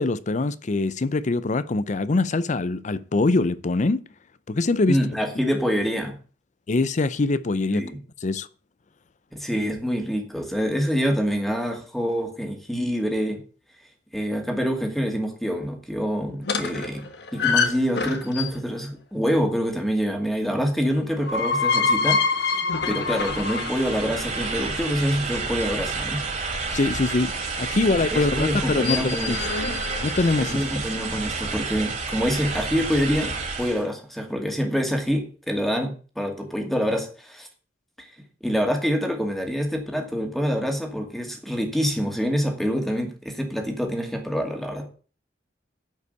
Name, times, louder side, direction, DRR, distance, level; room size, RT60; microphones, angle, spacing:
voice 1, 0.0-4.0 4.5-5.0 6.7-7.9 8.2-8.5 26.7-27.3 27.6-29.4 30.0-30.6, left 3 dB, 40° left, 0.5 m, -23 dB
voice 2, 4.9-6.2 7.7-8.0 9.4-13.4 14.1-22.6 22.9-26.2 28.1-29.3 30.4-37.5 38.4-44.9, equal, ahead, 2.4 m, -26 dB
sound 1, 16.4-18.8 21.0-25.0 28.6-30.9, left 4 dB, 65° left, 1.4 m, -26 dB
sound 2, 23.0-33.9, right 4 dB, 40° right, 4.5 m, -30 dB
10.5 x 5.6 x 8.2 m
head